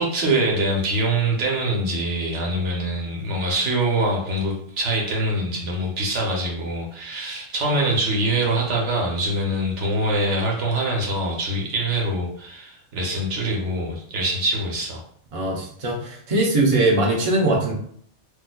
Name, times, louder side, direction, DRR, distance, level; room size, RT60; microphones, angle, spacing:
voice 1, 0.0-15.0, right 1 dB, 80° right, -1 dB, 1.1 m, -24 dB
voice 2, 15.3-17.7, right 2 dB, 35° right, -3 dB, 0.8 m, -21 dB
4.0 x 2.6 x 2.2 m, 0.63 s
omnidirectional pair, 1.2 m